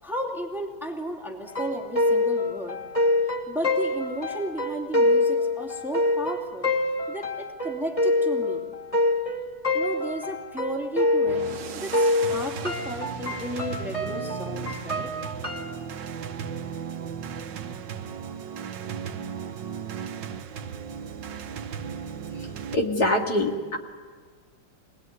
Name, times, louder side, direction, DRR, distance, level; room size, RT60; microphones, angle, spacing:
voice 1, 0.0-2.8 3.5-6.7 7.1-8.7 9.7-15.1, equal, ahead, 1 dB, 2.6 m, -34 dB
sound 1, 1.5-11.6 11.9-15.8, left 2 dB, 15° left, 2.7 m, -26 dB
sound 2, 11.3-22.8, right 7 dB, 75° right, 1.7 m, -36 dB
voice 2, 22.7-23.8, left 1 dB, 55° left, 1 dB, 2.7 m, -24 dB
26.0 x 20.0 x 9.6 m, 1.5 s
omnidirectional pair, 2.1 m